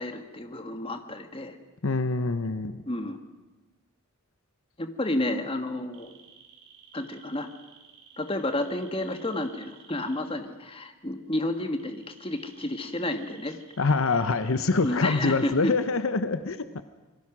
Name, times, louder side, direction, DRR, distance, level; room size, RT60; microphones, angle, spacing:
voice 1, 0.0-1.6 2.8-3.2 4.8-6.1 6.9-7.5 8.2-13.6 14.8-15.7, left 1 dB, 25° left, 7 dB, 1.6 m, -31 dB
voice 2, 1.8-2.8 13.8-16.8, left 3 dB, 65° left, 11 dB, 0.9 m, -25 dB
sound 1, 5.9-10.2 11.8-15.6, right 7 dB, 85° right, 5.9 m, -54 dB
27.0 x 20.5 x 6.1 m, 1.2 s
head